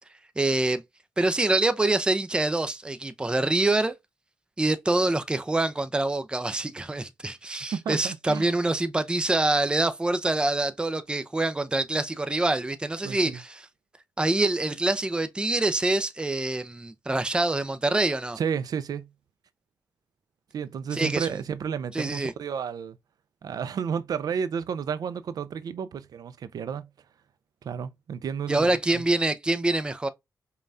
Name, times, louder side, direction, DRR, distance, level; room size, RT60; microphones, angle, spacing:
voice 1, 0.4-0.8 1.2-3.9 4.6-13.7 14.2-18.4 20.9-21.3 21.9-22.3 28.5-30.1, right 2 dB, 15° right, 0.4 m, -25 dB
voice 2, 7.7-8.5 13.0-13.4 18.4-19.1 20.5-23.0 23.4-26.9 27.6-29.0, right 7 dB, 75° right, 0.4 m, -32 dB
5.2 x 2.3 x 2.5 m
cardioid pair, 95°, 7 cm